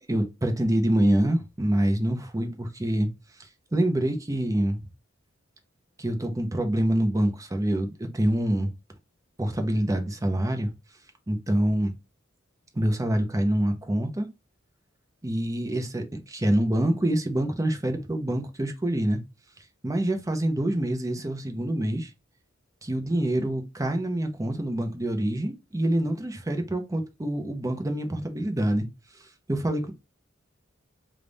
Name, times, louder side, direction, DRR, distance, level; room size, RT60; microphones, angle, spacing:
voice 1, 0.1-3.1 3.7-4.8 6.0-8.7 9.4-10.7 11.3-11.9 12.7-14.3 15.2-19.2 19.8-22.1 22.8-28.9 29.5-29.9, right 1 dB, 15° right, 0.6 m, -26 dB
3.4 x 2.4 x 3.9 m
head